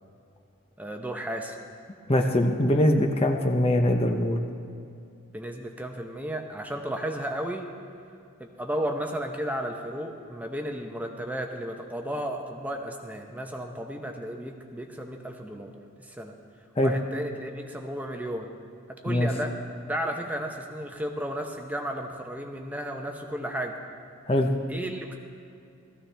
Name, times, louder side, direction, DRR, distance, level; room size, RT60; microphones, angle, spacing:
voice 1, 0.8-1.6 5.3-7.7 8.4-15.7 16.0-16.3 16.8-18.5 18.9-23.8 24.7-25.1, equal, 5° right, 3 dB, 0.8 m, -33 dB
voice 2, 2.1-4.4 16.8-16.9 19.1-19.3 24.3-24.5, left 1 dB, 25° left, 3 dB, 0.7 m, -22 dB
18.5 x 14.5 x 3.4 m, 2.5 s
head